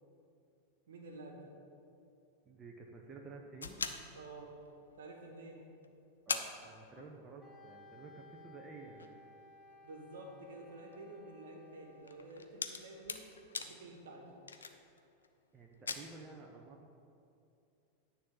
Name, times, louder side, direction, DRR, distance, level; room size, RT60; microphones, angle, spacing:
voice 1, 0.9-1.5 4.1-5.6 9.8-13.2 13.6-14.3, right 2 dB, 60° right, 1 dB, 1.5 m, -50 dB
voice 2, 2.4-3.8 6.3-9.2 15.5-16.9, right 4 dB, 20° right, 0 dB, 0.8 m, -52 dB
sound 1, 3.6-5.0 5.5-5.6 5.8-5.9 6.3-7.5 7.8-7.9 8.4-15.3 15.6-15.9, left 5 dB, 70° left, 0.5 m, -43 dB
Wind instrument woodwind instrument, 7.4-12.2, left 2 dB, 10° left, 1.1 m, -58 dB
9.7 x 4.2 x 7.5 m, 2.6 s
figure-of-eight pair, 90°, 0 cm